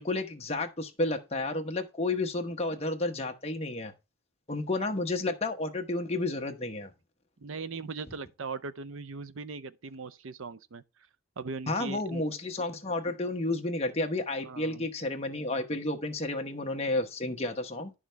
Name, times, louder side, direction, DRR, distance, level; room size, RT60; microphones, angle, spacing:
voice 1, 0.0-3.9 4.5-6.9 11.7-17.9, left 2 dB, 30° left, 1.1 m, -31 dB
voice 2, 7.4-10.8 11.4-12.3 14.4-14.9, right 4 dB, 60° right, 0.5 m, -39 dB
10.5 x 6.2 x 3.4 m
head